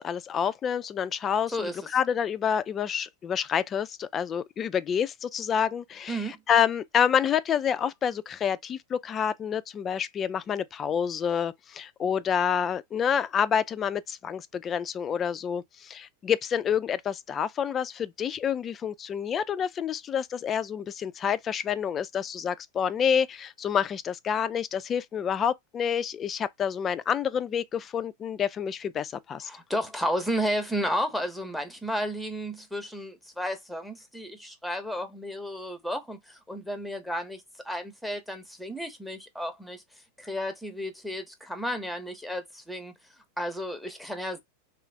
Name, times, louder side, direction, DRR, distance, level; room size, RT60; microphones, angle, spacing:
voice 1, 0.0-29.5, left 8 dB, 25° left, 0.3 m, -28 dB
voice 2, 1.5-1.9 6.1-6.4 29.5-39.8 40.2-42.9 43.4-44.4, equal, ahead, 0.7 m, -32 dB
3.0 x 2.4 x 3.2 m
figure-of-eight pair, 90°, 0 cm